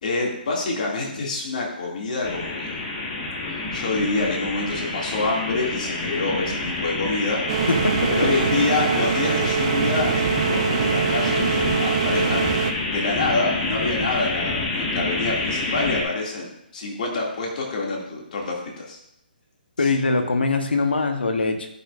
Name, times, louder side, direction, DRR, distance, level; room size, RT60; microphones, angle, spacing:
voice 1, 0.0-2.8 3.5-7.4 8.1-12.5 12.9-19.0, left 3 dB, 50° left, -2 dB, 2.5 m, -27 dB
sound 1, 2.2-16.0, left 2 dB, 25° left, 1.6 m, -28 dB
sound 2, 7.5-12.7, right 6 dB, 40° right, 0.6 m, -23 dB
voice 2, 7.7-8.3 19.8-21.7, left 3 dB, 80° left, 6 dB, 1.2 m, -22 dB
11.0 x 5.6 x 2.6 m, 0.80 s
figure-of-eight pair, 140°, 5 cm